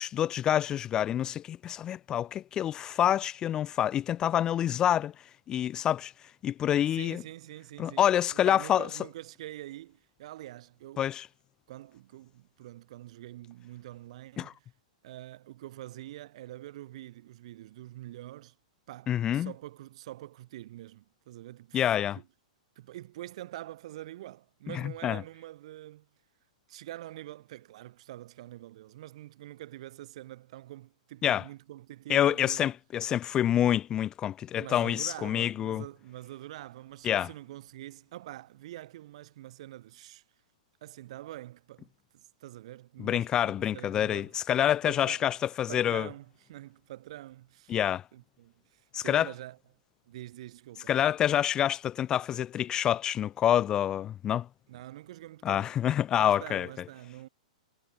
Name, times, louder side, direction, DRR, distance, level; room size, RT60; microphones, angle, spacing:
voice 1, 0.0-5.1 5.5-6.1 6.4-7.2 7.8-8.9 11.0-11.3 14.4-14.5 19.1-19.5 21.7-22.2 25.0-25.2 31.2-31.4 32.1-35.8 37.0-37.3 43.0-46.1 47.7-48.0 48.9-49.3 50.9-54.5 55.4-56.7, left 10 dB, 15° left, 0.4 m, -27 dB
voice 2, 6.8-11.1 11.7-14.7 15.0-18.6 18.9-22.3 22.8-26.1 26.7-32.7 34.6-40.2 40.8-44.3 44.8-45.3 45.7-47.8 48.1-49.6 50.1-50.9 54.7-55.8 56.1-57.3, right 15 dB, 50° right, 1.9 m, -45 dB
hypercardioid pair, 160°, 4 cm